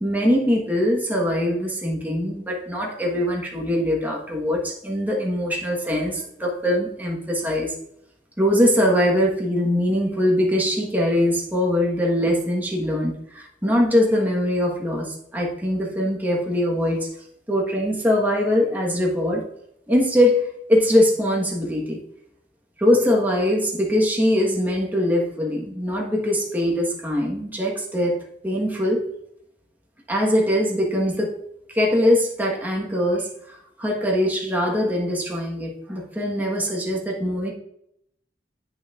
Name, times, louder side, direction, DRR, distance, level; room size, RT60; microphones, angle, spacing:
voice 1, 0.0-7.7 8.4-17.1 17.5-19.4 19.9-22.0 22.8-28.2 28.4-29.1 30.1-31.3 31.7-37.5, left 1 dB, 10° right, -2 dB, 1.4 m, -22 dB
8.7 x 6.3 x 2.5 m, 0.74 s
head